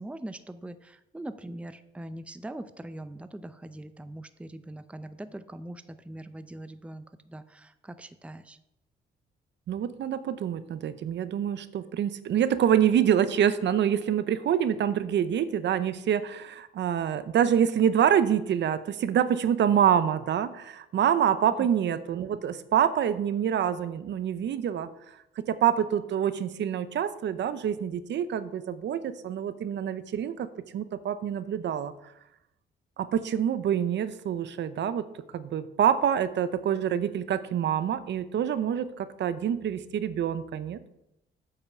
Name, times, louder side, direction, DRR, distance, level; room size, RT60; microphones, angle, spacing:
voice 1, 0.0-8.6 21.6-21.7, right 1 dB, 5° right, 11 dB, 0.6 m, -42 dB
voice 2, 9.7-24.9 25.4-30.5 30.7-31.9 33.0-35.1 35.3-40.8, right 9 dB, 65° right, 13 dB, 0.7 m, -26 dB
8.3 x 5.7 x 6.9 m, 0.83 s
cardioid pair, 90°, 20 cm